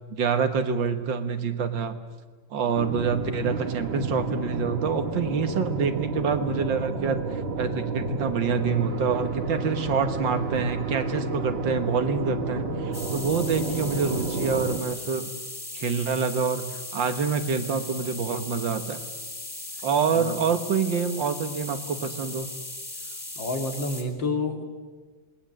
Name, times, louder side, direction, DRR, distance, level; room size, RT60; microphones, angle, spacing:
voice 1, 0.1-2.0 2.5-15.3 15.7-19.0 19.8-22.5, right 5 dB, 80° right, 8 dB, 2.1 m, -27 dB
sound 1, 2.7-14.8, right 3 dB, 35° right, 1.5 m, -30 dB
sound 2, 12.9-24.0, left 2 dB, 25° left, 3.2 m, -38 dB
voice 2, 23.4-24.6, left 2 dB, 75° left, 4 dB, 2.9 m, -29 dB
27.0 x 20.0 x 7.6 m, 1.4 s
omnidirectional pair, 2.0 m